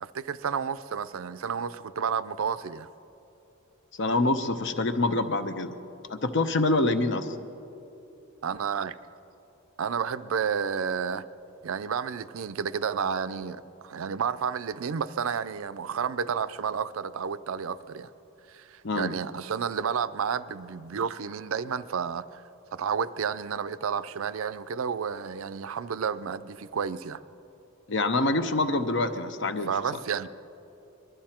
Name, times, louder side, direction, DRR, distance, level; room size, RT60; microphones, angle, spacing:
voice 1, 0.0-2.9 8.4-9.0 9.8-11.2 11.6-18.1 18.5-22.4 22.7-27.2 29.7-30.3, right 6 dB, 75° right, 14 dB, 0.5 m, -31 dB
voice 2, 4.0-5.7 6.1-7.3 18.8-19.1 27.9-29.7, left 2 dB, 55° left, 9 dB, 0.8 m, -26 dB
22.0 x 12.5 x 4.4 m, 2.9 s
head